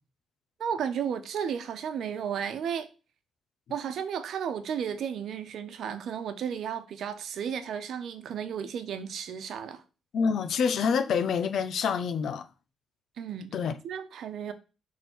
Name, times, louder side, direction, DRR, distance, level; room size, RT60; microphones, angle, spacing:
voice 1, 0.6-2.9 3.7-9.8 13.2-13.5 13.8-14.5, right 8 dB, 70° right, 1.0 m, -33 dB
voice 2, 10.1-12.5 13.5-13.8, left 6 dB, 65° left, 0.8 m, -27 dB
6.5 x 3.7 x 6.2 m
cardioid pair, 90°, 0 cm